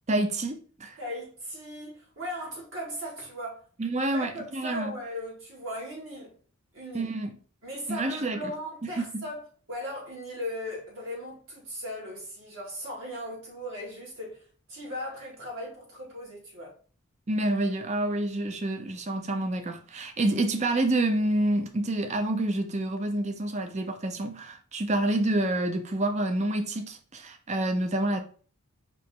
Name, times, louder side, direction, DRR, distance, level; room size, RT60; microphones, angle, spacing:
voice 1, 0.1-1.0 3.8-4.9 6.9-7.3 7.9-8.4 9.0-9.2 17.3-28.2, right 1 dB, 30° right, 0.5 m, -28 dB
voice 2, 1.0-3.7 3.9-6.4 6.7-7.1 7.6-9.4 9.7-16.8, equal, 60° right, 2.0 m, -38 dB
5.2 x 2.8 x 3.6 m
head